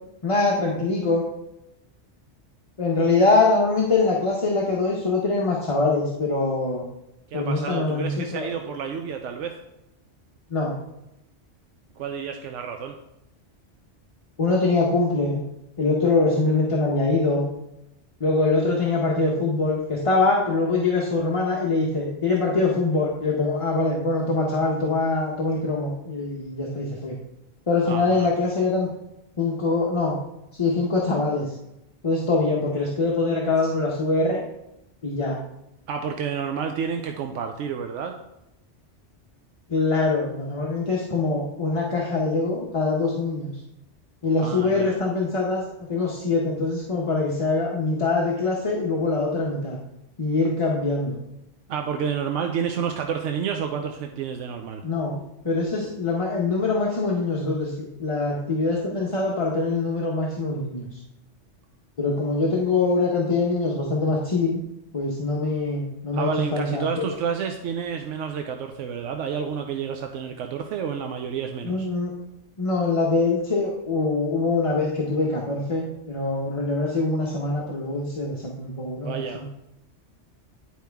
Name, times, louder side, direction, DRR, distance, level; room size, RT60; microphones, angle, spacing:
voice 1, 0.2-1.2 2.8-6.9 7.3-8.7 10.5-10.8 14.4-15.4 15.8-17.4 18.2-27.2 27.7-28.9 29.4-30.2 30.5-31.6 32.0-34.4 35.0-35.4 39.7-43.6 44.2-45.6 45.9-49.8 50.2-51.2 54.8-61.0 62.0-64.6 64.9-67.1 71.6-72.1 72.6-79.5, left 3 dB, 30° left, -3 dB, 0.9 m, -23 dB
voice 2, 7.3-9.6 12.0-13.0 27.9-28.3 35.9-38.1 44.4-44.9 51.7-54.8 66.1-71.9 79.0-79.4, right 7 dB, 90° right, 4 dB, 0.9 m, -30 dB
10.5 x 4.7 x 3.4 m, 0.88 s
omnidirectional pair, 1.2 m